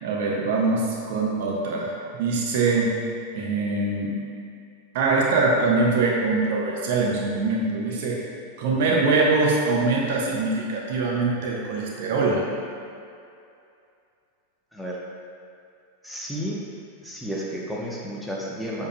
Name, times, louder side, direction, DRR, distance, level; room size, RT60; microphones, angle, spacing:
voice 1, 0.0-2.9 3.3-4.2 4.9-8.2 8.6-12.4, right 3 dB, 55° right, -2 dB, 1.1 m, -23 dB
voice 2, 16.0-16.6 17.0-18.9, equal, ahead, -5 dB, 0.9 m, -32 dB
7.5 x 6.5 x 2.3 m, 2.5 s
figure-of-eight pair, 90°, 0 cm